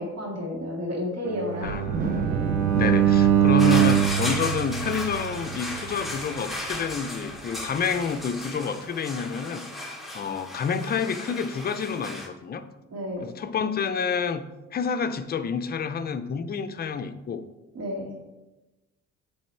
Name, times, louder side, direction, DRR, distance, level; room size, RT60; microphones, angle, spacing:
voice 1, 0.0-1.8 12.9-13.3 17.7-18.1, left 1 dB, 60° right, -1 dB, 2.1 m, -31 dB
Bowed string instrument, 1.3-5.5, right 9 dB, 80° right, 0.7 m, -22 dB
voice 2, 1.6-2.3 2.7-9.9 10.1-12.6 13.2-14.4 14.7-17.4, left 6 dB, 35° left, 10 dB, 0.4 m, -29 dB
Wind, 1.6-8.1, right 5 dB, 30° right, 0.4 m, -34 dB
sound 1, 3.6-12.3, left 1 dB, ahead, 0.9 m, -35 dB
8.5 x 3.3 x 4.3 m, 1.1 s
cardioid pair, 135°, 30 cm